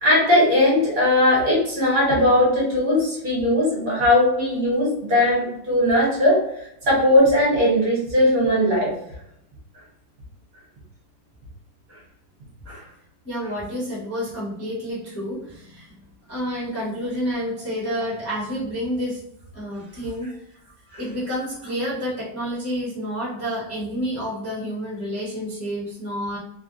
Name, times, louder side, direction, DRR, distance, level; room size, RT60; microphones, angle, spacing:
voice 1, 0.0-8.9 12.7-12.8 20.9-21.0, left 1 dB, 50° right, -5 dB, 1.4 m, -19 dB
voice 2, 13.2-15.9 16.3-19.2 19.5-20.4 21.0-26.4, equal, 15° left, -8 dB, 0.6 m, -29 dB
3.3 x 2.2 x 2.6 m, 0.77 s
omnidirectional pair, 2.1 m